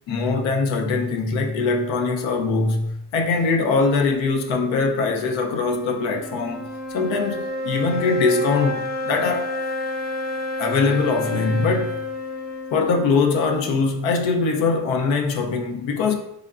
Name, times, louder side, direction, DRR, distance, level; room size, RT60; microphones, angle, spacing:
voice 1, 0.1-6.7 6.9-9.5 10.6-12.0 12.7-16.1, left 4 dB, 85° left, 0.6 m, -22 dB
sound 1, 4.9-14.3, left 2 dB, 20° left, 0.7 m, -30 dB
3.7 x 3.5 x 2.4 m
cardioid pair, 70°, 44 cm